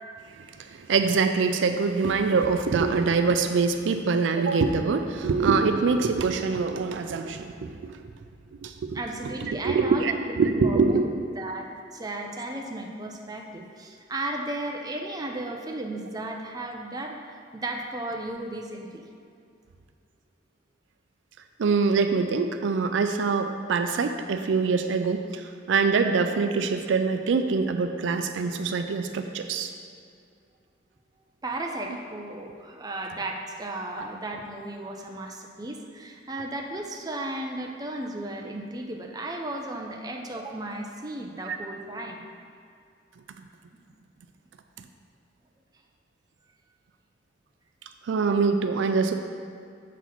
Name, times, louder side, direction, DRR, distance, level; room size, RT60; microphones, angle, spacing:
voice 1, 0.3-8.0 8.6-9.0 9.4-11.0 21.6-29.7 41.5-41.6 44.8-44.9 48.0-49.1, right 4 dB, 85° right, 7 dB, 0.4 m, -24 dB
voice 2, 8.9-19.0 31.4-42.2, right 1 dB, 20° right, 1 dB, 0.5 m, -35 dB
7.2 x 4.0 x 4.4 m, 2.4 s
head